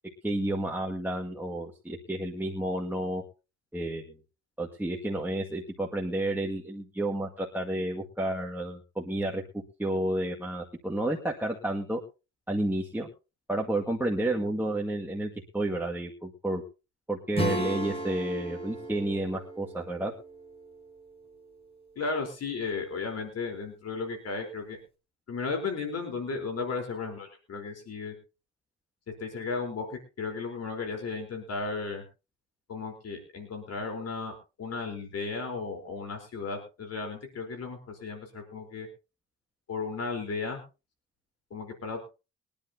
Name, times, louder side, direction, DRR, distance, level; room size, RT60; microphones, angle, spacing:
voice 1, 0.2-3.2 3.7-4.2 4.6-9.4 9.8-12.0 12.5-13.1 13.5-16.6 17.1-20.1, right 1 dB, 5° right, -2 dB, 2.1 m, -31 dB
Acoustic guitar / Strum, 17.3-21.6, equal, 20° left, 5.7 m, -36 dB
voice 2, 22.0-24.8 25.3-28.1 29.2-32.0 32.7-38.9 39.7-40.6 41.5-42.1, left 4 dB, 55° left, 5 dB, 4.1 m, -35 dB
23.0 x 10.5 x 2.8 m, 0.30 s
cardioid pair, 90°, 30 cm